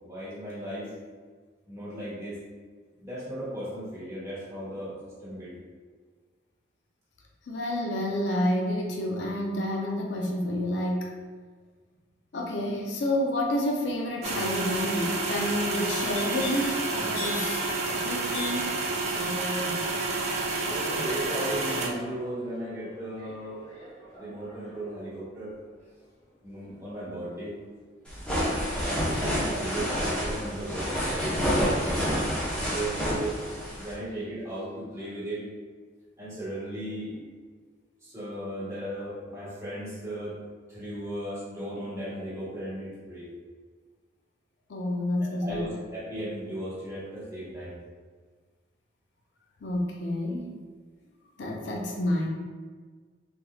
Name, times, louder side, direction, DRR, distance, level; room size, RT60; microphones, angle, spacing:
voice 1, 0.0-0.9 1.7-2.4 3.0-5.5 19.1-19.8 20.6-23.6 24.2-25.5 26.4-27.5 28.8-32.0 32.6-33.4 33.8-35.4 36.2-37.2 38.0-40.3 40.7-43.3 45.2-47.8, right 1 dB, 15° right, -11 dB, 1.3 m, -36 dB
voice 2, 7.5-11.1 12.3-18.7 44.7-45.8 49.6-50.5 51.4-52.3, left 1 dB, 85° left, 0 dB, 0.5 m, -29 dB
sound 1, 14.2-21.9, right 3 dB, 40° right, 0.5 m, -29 dB
sound 2, 15.7-27.7 28.0-28.4, left 1 dB, 40° left, 0.9 m, -44 dB
sound 3, 28.1-33.9, equal, 5° left, 0.9 m, -28 dB
3.5 x 3.0 x 2.3 m, 1.5 s
head